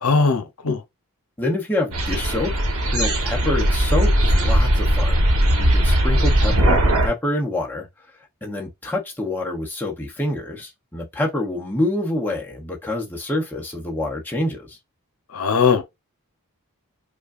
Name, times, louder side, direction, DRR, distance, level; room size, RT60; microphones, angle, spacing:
voice 1, 0.0-0.8 15.3-15.8, left 5 dB, 75° left, 0.7 m, -19 dB
voice 2, 1.4-2.5 2.9-5.3 5.6-7.9 8.4-14.8, left 1 dB, 10° left, 0.8 m, -26 dB
sound 1, 1.9-7.1, right 1 dB, 70° right, 1.1 m, -18 dB
5.1 x 2.3 x 2.5 m
head